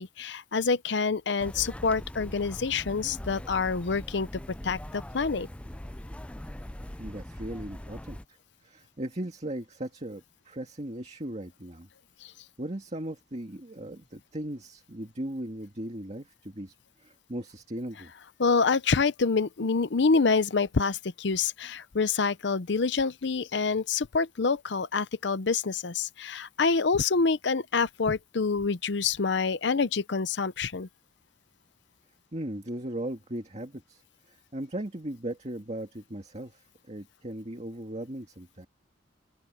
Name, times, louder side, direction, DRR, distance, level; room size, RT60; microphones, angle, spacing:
voice 1, 0.0-4.3 4.6-5.5 12.2-12.3 18.4-30.9, left 4 dB, 65° left, 0.7 m, -27 dB
sound 1, 1.4-8.3, left 1 dB, 5° left, 0.5 m, -41 dB
voice 2, 7.0-11.9 12.6-16.7 17.0-18.1 32.3-34.0 34.3-38.7, right 1 dB, 35° right, 2.0 m, -38 dB
open air
head